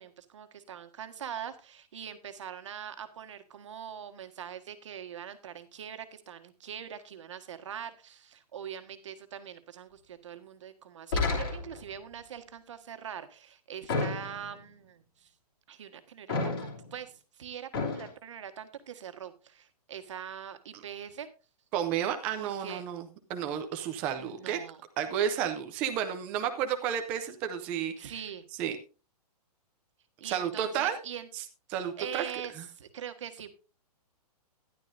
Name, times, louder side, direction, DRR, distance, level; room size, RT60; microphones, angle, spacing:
voice 1, 0.0-15.3 15.7-21.3 22.4-22.8 24.2-24.8 28.0-28.4 30.2-31.3 32.0-33.5, right 9 dB, 50° right, 9 dB, 1.5 m, -43 dB
sound 1, 11.1-11.9 13.9-14.6 16.3-16.9 17.7-18.1, left 3 dB, 35° left, 3.0 m, -31 dB
voice 2, 21.7-24.6 25.0-28.1 28.6-28.8 30.2-31.0 31.7-32.2 32.6-32.7, right 9 dB, 5° right, 7 dB, 0.4 m, -31 dB
13.0 x 11.0 x 2.6 m, 0.32 s
hypercardioid pair, 175°, 20 cm